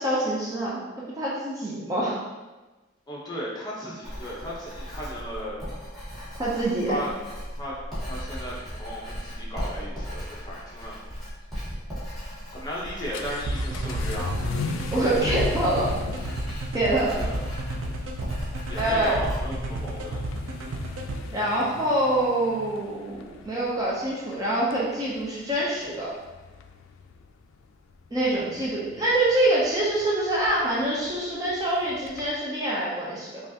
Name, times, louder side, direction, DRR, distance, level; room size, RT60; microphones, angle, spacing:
voice 1, 0.0-2.2 6.3-7.0 14.9-15.9 16.7-17.2 18.8-19.2 21.3-26.1 28.1-33.4, right 1 dB, 20° right, -6 dB, 0.5 m, -25 dB
voice 2, 3.1-5.6 6.9-7.1 7.6-7.7 8.1-11.1 12.5-14.6 17.1-17.5 18.7-20.2, equal, 20° left, -5 dB, 0.9 m, -35 dB
Writing, 4.0-20.1, equal, ahead, 1.3 m, -37 dB
Vehicle / Accelerating revving vroom, 12.5-32.3, left 4 dB, 80° left, 0.3 m, -39 dB
sound 1, 13.5-21.2, right 2 dB, 70° right, 0.5 m, -32 dB
5.2 x 2.4 x 2.8 m, 1.2 s
head